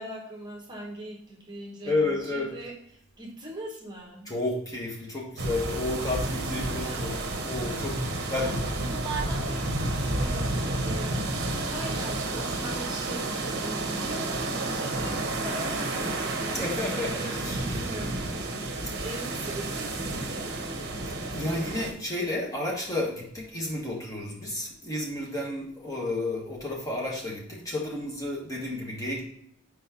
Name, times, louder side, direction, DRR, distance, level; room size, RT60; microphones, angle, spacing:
voice 1, 0.0-2.7 3.2-4.3 6.4-7.4 8.0-11.2 11.6-20.6, right 1 dB, 20° right, -1 dB, 1.0 m, -41 dB
voice 2, 1.8-2.7 4.2-8.6 16.5-17.9 21.3-29.3, left 2 dB, 15° left, -2 dB, 1.2 m, -31 dB
sound 1, 5.4-21.9, right 2 dB, 50° right, 0.8 m, -31 dB
4.7 x 4.2 x 5.4 m, 0.71 s
head